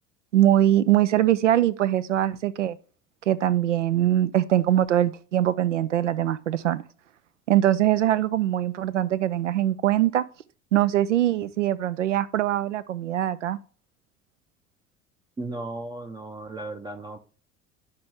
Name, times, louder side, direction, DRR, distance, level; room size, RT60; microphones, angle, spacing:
voice 1, 0.3-2.8 3.3-6.8 7.5-10.2 10.7-13.6, right 12 dB, 75° right, 0.6 m, -22 dB
voice 2, 15.4-17.2, right 2 dB, 10° right, 0.6 m, -35 dB
9.5 x 5.9 x 3.3 m
figure-of-eight pair, 65°, 37 cm